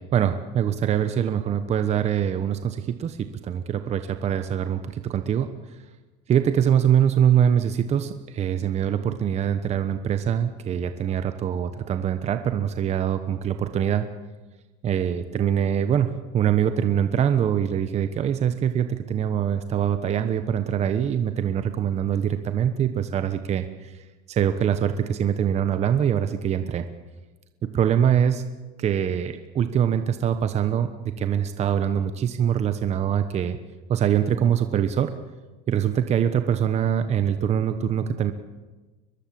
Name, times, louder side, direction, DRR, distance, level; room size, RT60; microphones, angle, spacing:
voice 1, 0.0-5.5 6.3-14.1 14.8-23.9 24.3-26.9 27.7-28.4 28.8-30.9 31.2-33.6 33.9-35.1 35.7-38.3, right 9 dB, 30° right, 9 dB, 1.2 m, -23 dB
23.0 x 20.5 x 7.7 m, 1.2 s
supercardioid pair, 135°, 21 cm